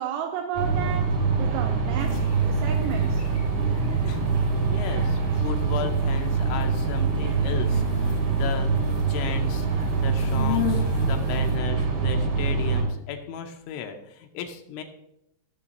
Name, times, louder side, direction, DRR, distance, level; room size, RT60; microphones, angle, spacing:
voice 1, 0.0-3.2, right 9 dB, 85° right, 5 dB, 2.5 m, -33 dB
sound 1, 0.5-12.8, right 5 dB, 55° right, 2.3 m, -24 dB
sound 2, 2.0-11.6, left 9 dB, 65° left, 1.8 m, -38 dB
voice 2, 4.1-8.7 9.1-14.8, left 8 dB, 85° left, 5 dB, 2.9 m, -35 dB
16.0 x 7.0 x 2.7 m, 0.81 s
omnidirectional pair, 5.5 m